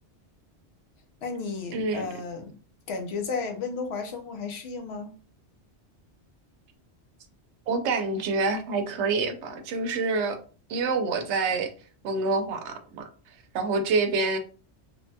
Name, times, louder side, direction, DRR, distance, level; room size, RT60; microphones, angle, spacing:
voice 1, 1.2-2.5 2.9-5.1, left 4 dB, 70° left, 5 dB, 0.8 m, -33 dB
voice 2, 1.7-2.0 7.7-10.4 10.7-11.7 12.0-13.1 13.5-14.4, right 3 dB, 75° right, 6 dB, 0.8 m, -27 dB
3.2 x 2.1 x 2.7 m, 0.39 s
omnidirectional pair, 1.2 m